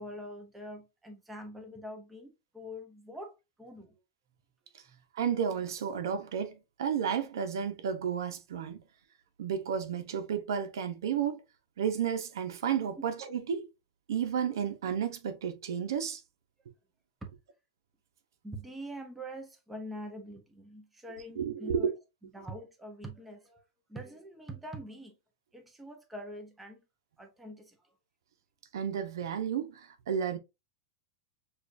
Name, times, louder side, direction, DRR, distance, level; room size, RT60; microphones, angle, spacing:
voice 1, 0.0-4.0 4.9-5.0 17.2-17.3 18.4-21.9 22.3-23.6 23.9-25.1 25.5-26.8 27.2-27.8, equal, 5° right, 0.8 m, -44 dB
voice 2, 5.1-8.8 9.4-11.4 11.8-13.7 14.1-16.2 21.4-21.9 28.7-30.4, right 8 dB, 85° right, 0.9 m, -32 dB
6.6 x 2.5 x 2.6 m
supercardioid pair, 165°, 2 cm